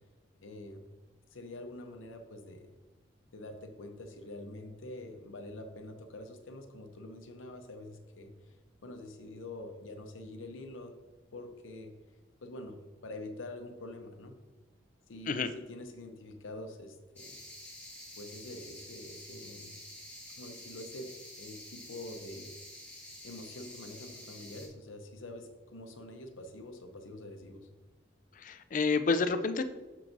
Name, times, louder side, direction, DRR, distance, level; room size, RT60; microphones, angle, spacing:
voice 1, 0.4-0.9 1.3-2.7 3.3-8.6 8.8-11.0 11.3-11.9 12.4-14.4 15.1-17.4 18.2-19.7 20.4-22.6 23.2-27.7, left 1 dB, 90° left, 5 dB, 0.7 m, -46 dB
sound 1, 17.2-24.7, left 1 dB, 10° left, 1.7 m, -49 dB
voice 2, 28.4-29.6, left 4 dB, 40° left, 11 dB, 0.4 m, -29 dB
12.0 x 4.7 x 2.6 m, 1.2 s
head